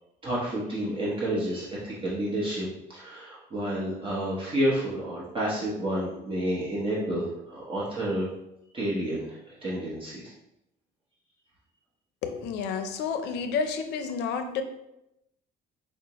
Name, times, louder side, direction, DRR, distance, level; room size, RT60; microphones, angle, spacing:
voice 1, 0.2-8.3 8.7-10.3, right 1 dB, 30° right, -7 dB, 0.9 m, -30 dB
voice 2, 12.2-14.6, left 6 dB, 85° left, 7 dB, 0.5 m, -30 dB
4.9 x 2.1 x 2.9 m, 0.86 s
cardioid pair, 110°, 17 cm